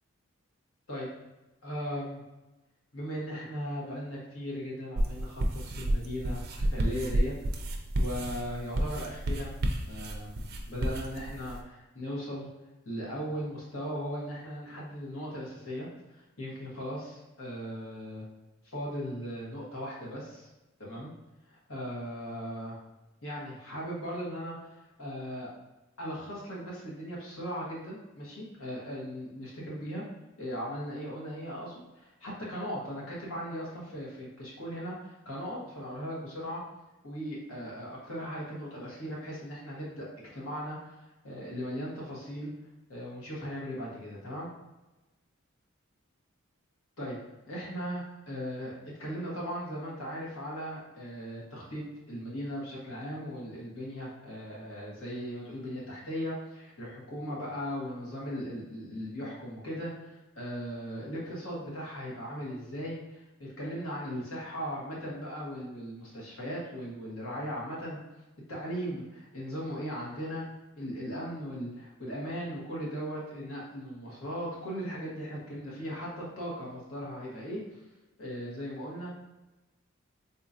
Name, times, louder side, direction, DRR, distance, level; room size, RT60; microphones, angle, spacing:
voice 1, 1.6-2.2 2.9-7.3 8.0-9.6 9.9-12.5 12.8-18.2 18.6-20.5 20.8-21.1 21.5-22.8 23.2-25.5 26.0-30.0 30.4-36.6 37.0-40.0 40.3-41.0 41.2-42.5 42.9-44.5 47.0-47.2 47.5-48.7 49.0-68.0 68.5-70.4 70.8-77.8 78.2-79.2, equal, 70° left, -5 dB, 1.3 m, -38 dB
sound 1, 5.0-11.6, right 1 dB, 45° right, 0.4 m, -30 dB
3.9 x 2.8 x 2.5 m, 1.1 s
head